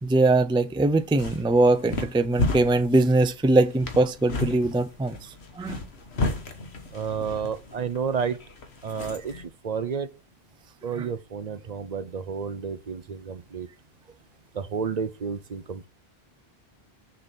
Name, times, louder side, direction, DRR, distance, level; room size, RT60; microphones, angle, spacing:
voice 1, 0.0-5.2 5.6-5.8 11.0-11.1, right 2 dB, 10° right, 0.3 m, -21 dB
sound 1, 0.9-9.5, left 2 dB, 80° left, 1.6 m, -33 dB
voice 2, 6.9-8.4 8.8-9.3 9.6-10.1 10.8-13.7 14.5-15.9, right 6 dB, 45° right, 0.7 m, -30 dB
6.7 x 5.2 x 5.8 m
omnidirectional pair, 1.1 m